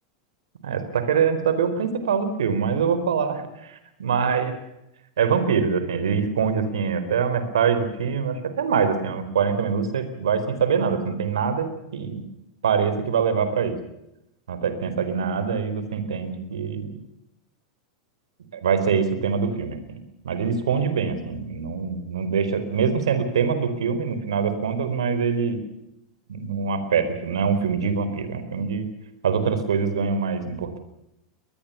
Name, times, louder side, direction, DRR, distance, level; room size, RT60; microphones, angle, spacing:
voice 1, 0.6-4.5 5.2-12.2 12.6-13.8 14.5-17.0 18.5-25.6 26.3-28.9 29.2-30.8, right 6 dB, 80° right, 10 dB, 4.5 m, -24 dB
22.0 x 21.0 x 7.1 m, 0.84 s
hypercardioid pair, 95°, 3 cm